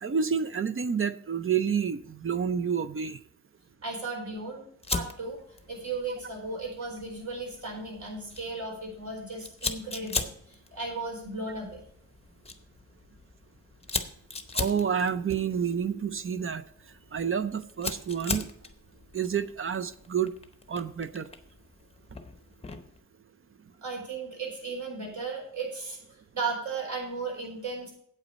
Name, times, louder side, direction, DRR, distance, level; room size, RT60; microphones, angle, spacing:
voice 1, 0.0-3.2 14.5-16.6 17.1-18.5 19.1-20.3 20.7-21.3, right 7 dB, 40° right, 13 dB, 0.5 m, -29 dB
voice 2, 3.8-4.6 4.9-11.8 23.8-26.0 26.3-27.9, right 3 dB, 60° right, -1 dB, 4.1 m, -35 dB
Fire, 4.8-23.0, left 3 dB, 20° left, 0.7 m, -39 dB
8.5 x 8.3 x 5.2 m, 0.66 s
wide cardioid pair, 165°, 33 cm